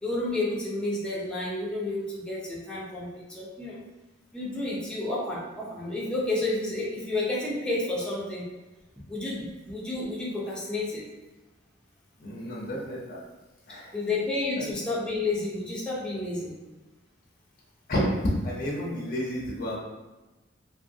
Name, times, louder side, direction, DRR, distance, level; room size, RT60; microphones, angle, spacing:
voice 1, 0.0-3.8 4.3-8.4 9.1-11.0 13.9-16.5, left 2 dB, 5° left, -6 dB, 0.6 m, -30 dB
voice 2, 12.2-13.2 13.7-13.9 14.6-14.7 17.9-18.2 18.4-19.8, equal, 50° left, -4 dB, 0.6 m, -31 dB
2.7 x 2.5 x 2.7 m, 1.1 s
head